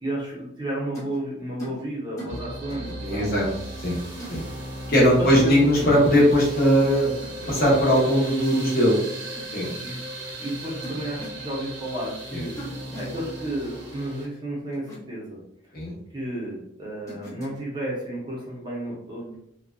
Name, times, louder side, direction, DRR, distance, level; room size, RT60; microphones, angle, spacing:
voice 1, 0.0-3.3 5.2-5.7 9.8-12.5 13.0-15.4 16.1-19.4, right 1 dB, 25° right, -4 dB, 0.6 m, -32 dB
sound 1, 0.9-1.2 1.6-1.8 2.2-2.4 2.7-2.9 4.2-4.4 5.8-6.0 7.2-7.5 7.7-8.1 9.4-9.7 10.8-11.4 12.6-13.1 14.7-15.0 17.1-17.6, right 1 dB, 15° left, 0.7 m, -39 dB
sound 2, 2.3-14.3, right 1 dB, 80° right, 0.9 m, -37 dB
voice 2, 3.0-3.5 3.8-4.0 4.3-4.4 4.9-7.1 7.5-9.0 9.5-9.7 15.7-15.9, equal, 50° left, -4 dB, 0.8 m, -19 dB
2.5 x 2.2 x 2.2 m, 0.74 s
head